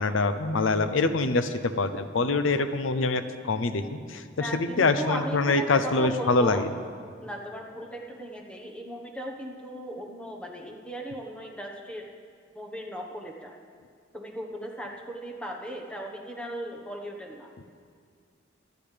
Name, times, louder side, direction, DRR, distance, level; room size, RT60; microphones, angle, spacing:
voice 1, 0.0-6.7, left 3 dB, 80° left, 10 dB, 0.6 m, -25 dB
voice 2, 4.4-6.7 7.2-12.1 12.5-13.5 14.1-17.5, right 1 dB, 5° left, 0 dB, 1.2 m, -37 dB
23.5 x 10.5 x 3.4 m, 2.2 s
head